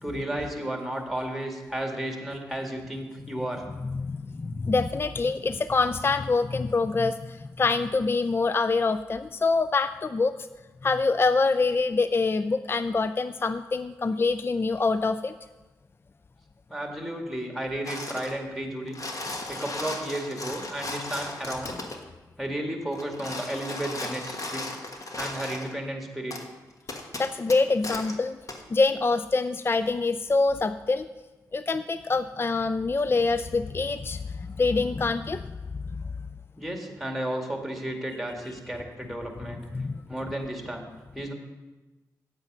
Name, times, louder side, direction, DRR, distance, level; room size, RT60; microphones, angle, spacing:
voice 1, 0.0-3.6 16.7-19.1 19.5-21.8 22.4-24.6 25.2-26.4 36.6-39.6 40.1-40.9 41.1-41.3, right 1 dB, ahead, 2 dB, 2.1 m, -33 dB
voice 2, 3.8-10.5 10.8-15.3 27.2-28.4 28.7-31.1 31.5-35.4 39.7-39.9, left 3 dB, 30° left, 12 dB, 0.4 m, -25 dB
sound 1, 17.8-18.4 18.8-22.0 22.9-25.7 26.3-26.4 26.9-28.1 28.5-28.6, left 2 dB, 50° left, 1.4 m, -36 dB
8.9 x 8.0 x 5.4 m, 1.2 s
supercardioid pair, 45°, 7 cm